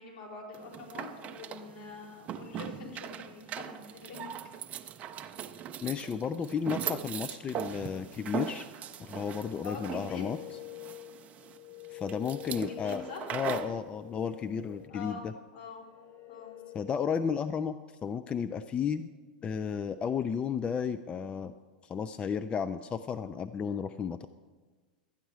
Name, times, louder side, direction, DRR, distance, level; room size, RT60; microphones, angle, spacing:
voice 1, 0.0-4.4 9.6-10.2 12.5-13.3 14.9-15.2 15.5-15.8 16.3-16.6, left 5 dB, 70° left, -5 dB, 4.1 m, -45 dB
sound 1, 0.5-13.8, right 9 dB, 30° right, 0.6 m, -40 dB
voice 2, 5.8-8.7 9.0-10.4 11.9-15.3 16.7-19.1 19.4-21.5 21.8-24.3, left 7 dB, 25° left, 11 dB, 0.4 m, -33 dB
sound 2, 9.5-17.4, left 16 dB, 40° left, 0.8 m, -48 dB
12.5 x 8.9 x 4.8 m, 1.4 s
hypercardioid pair, 95°, 5 cm